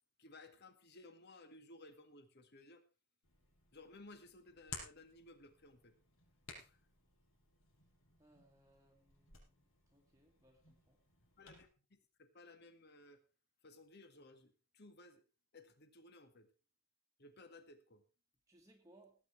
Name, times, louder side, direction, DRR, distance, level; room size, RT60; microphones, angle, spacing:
voice 1, 0.2-2.8 3.7-5.9 6.6-6.8 11.4-13.2 13.6-15.2 15.5-16.5 17.2-18.0, left 2 dB, 50° left, 8 dB, 1.9 m, -59 dB
Hands, 3.2-11.7, left 4 dB, 70° left, 5.8 m, -57 dB
voice 2, 8.2-11.0 18.5-19.2, right 1 dB, 15° right, 1 dB, 1.6 m, -68 dB
18.0 x 8.9 x 4.5 m, 0.34 s
head